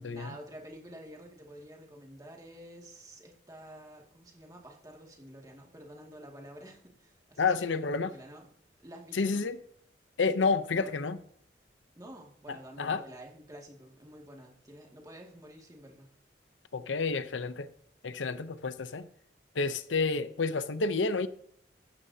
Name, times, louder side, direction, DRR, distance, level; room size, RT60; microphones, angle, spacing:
voice 1, 0.0-8.5 8.8-9.4 10.7-10.9 12.0-16.1, right 1 dB, 20° right, 2.2 m, -49 dB
voice 2, 7.4-8.1 9.1-9.6 10.2-11.2 12.8-13.0 16.7-17.7 18.0-19.1 19.6-21.3, left 4 dB, 90° left, 0.7 m, -29 dB
14.5 x 13.0 x 2.8 m
head